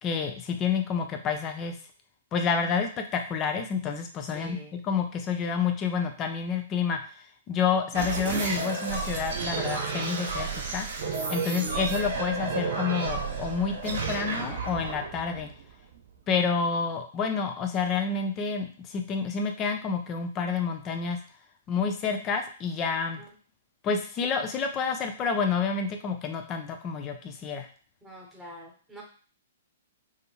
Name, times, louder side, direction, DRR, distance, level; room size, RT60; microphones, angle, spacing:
voice 1, 0.0-1.8 2.3-7.0 7.5-10.9 11.3-15.5 16.3-21.2 21.7-23.2 23.8-27.7, left 5 dB, 25° left, 5 dB, 0.5 m, -29 dB
voice 2, 4.3-4.7 23.2-23.3 28.0-29.0, equal, 10° right, -2 dB, 0.9 m, -45 dB
sound 1, 7.9-16.1, right 4 dB, 55° right, 0.6 m, -31 dB
2.5 x 2.3 x 3.0 m, 0.41 s
figure-of-eight pair, 115°, 0 cm